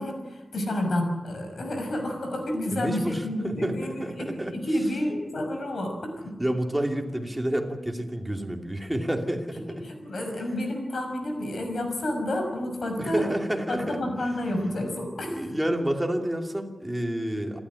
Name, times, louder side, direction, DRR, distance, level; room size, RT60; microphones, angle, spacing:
voice 1, 0.0-6.3 9.7-13.2 13.7-15.4, left 1 dB, 65° left, 4 dB, 6.0 m, -30 dB
voice 2, 2.7-4.6 6.4-9.8 13.0-14.3 15.2-17.6, right 1 dB, 10° right, 3 dB, 2.6 m, -29 dB
27.5 x 12.5 x 9.9 m, 1.2 s
wide cardioid pair, 110°, 0 cm